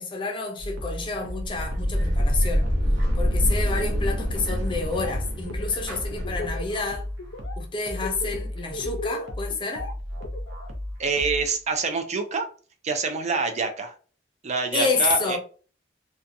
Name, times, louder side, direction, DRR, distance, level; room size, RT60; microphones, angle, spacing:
voice 1, 0.0-2.7 3.1-7.1 7.6-9.9 14.7-15.4, left 3 dB, 25° left, 0.5 m, -29 dB
sound 1, 0.6-11.6, left 1 dB, 85° right, 0.7 m, -35 dB
sound 2, 1.3-6.9, equal, 65° right, 1.1 m, -26 dB
Laughter, 4.7-5.1 5.4-6.8 7.2-7.6 7.9-10.7, left 2 dB, 70° left, 0.5 m, -36 dB
voice 2, 11.0-12.5 12.8-13.9 14.4-15.4, right 4 dB, 35° right, 0.5 m, -26 dB
2.8 x 2.2 x 2.5 m
head